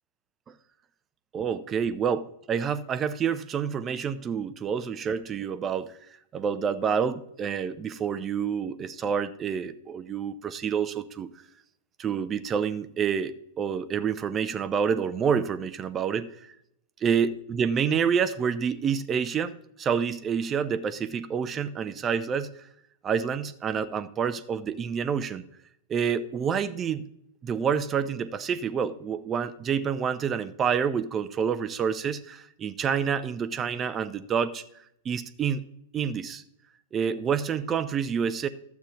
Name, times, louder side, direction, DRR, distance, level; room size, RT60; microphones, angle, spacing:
voice 1, 1.3-5.9 6.3-11.3 12.0-16.3 17.0-22.5 23.0-25.4 25.9-27.1 27.4-34.6 35.0-35.6 35.9-36.4 36.9-38.5, right 7 dB, 25° right, 14 dB, 0.6 m, -28 dB
12.5 x 8.2 x 3.0 m, 0.75 s
figure-of-eight pair, 95°, 0 cm